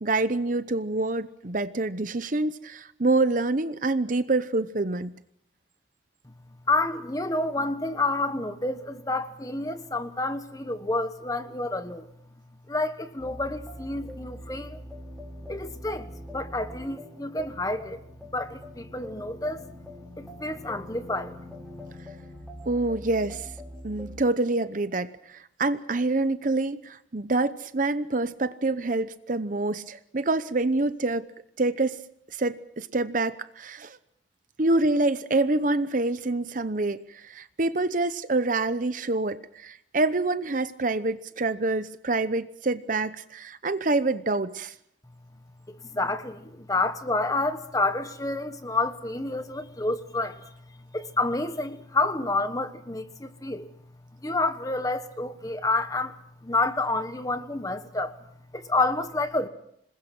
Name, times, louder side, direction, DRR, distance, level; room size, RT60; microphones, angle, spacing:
voice 1, 0.0-5.1 22.7-23.5 23.8-31.3 31.6-32.0 32.4-34.0 34.6-44.7, right 2 dB, 40° right, 0.8 m, -26 dB
voice 2, 6.7-12.1 12.7-14.8 15.5-18.0 18.3-19.8 20.2-21.4 21.8-21.9 45.7-53.7 54.2-56.2 56.4-58.2 58.5-59.5, left 2 dB, 20° left, 1.2 m, -29 dB
sound 1, 13.2-24.2, equal, ahead, 5.7 m, -43 dB
27.0 x 21.0 x 6.1 m
head